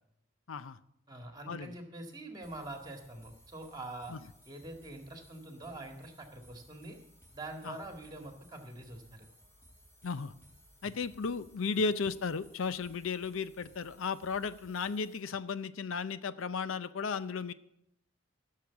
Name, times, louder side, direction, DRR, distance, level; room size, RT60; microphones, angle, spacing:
voice 1, 1.1-4.2 4.5-7.0 7.3-9.3, right 2 dB, 20° right, 3 dB, 1.8 m, -45 dB
sound 1, 2.4-15.2, equal, 15° left, 2.8 m, -61 dB
voice 2, 10.0-10.3 10.8-17.5, left 5 dB, 75° left, 14 dB, 0.5 m, -35 dB
15.0 x 6.7 x 7.1 m, 0.77 s
head